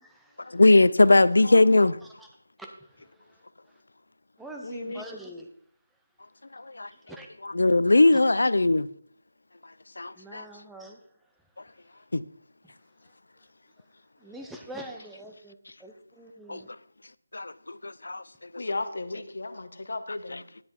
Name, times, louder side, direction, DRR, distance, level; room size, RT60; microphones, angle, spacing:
voice 1, 0.0-0.6 2.2-2.3 2.6-3.4 4.4-5.5 7.1-7.3 10.2-11.0 14.2-16.7, right 1 dB, ahead, 0.5 m, -44 dB
voice 2, 0.5-2.0 6.5-6.9 7.4-8.9 10.0-10.4 12.1-12.2 16.5-16.6 17.3-18.2 20.3-20.4, left 2 dB, 90° left, 0.4 m, -20 dB
voice 3, 4.6-5.0 18.6-20.4, left 2 dB, 55° left, 1.0 m, -35 dB
10.0 x 5.9 x 4.5 m
figure-of-eight pair, 180°, 0 cm